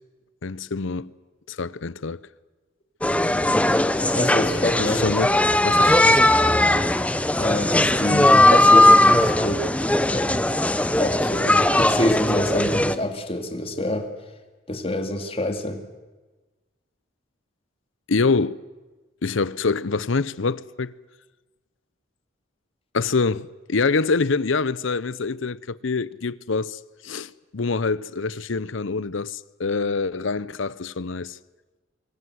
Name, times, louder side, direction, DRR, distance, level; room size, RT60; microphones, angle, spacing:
voice 1, 0.4-1.1 1.5-2.2 4.8-5.3 5.6-6.2 18.1-18.6 19.2-20.9 22.9-31.4, left 4 dB, 70° left, 0.7 m, -25 dB
sound 1, 3.0-13.0, left 1 dB, 5° left, 0.7 m, -18 dB
voice 2, 4.1-5.0 7.4-9.6 10.1-10.5 11.0-14.1 14.7-15.8, left 1 dB, 30° left, 2.4 m, -26 dB
25.0 x 23.5 x 8.0 m
head